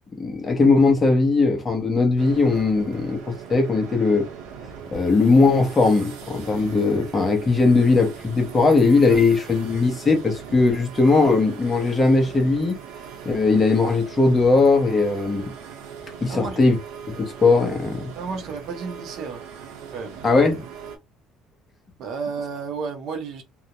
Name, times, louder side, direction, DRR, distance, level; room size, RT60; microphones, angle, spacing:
voice 1, 0.2-4.3 4.9-12.8 13.2-15.5 16.2-16.8 17.2-18.1 20.2-20.6, left 3 dB, 20° left, 0.7 m, -19 dB
sound 1, 2.2-21.0, right 7 dB, 90° right, 0.7 m, -40 dB
voice 2, 16.3-16.6 18.1-19.4 19.9-20.2 22.0-23.4, right 5 dB, 55° right, 0.6 m, -32 dB
2.3 x 2.0 x 2.8 m
cardioid pair, 150°, 0 cm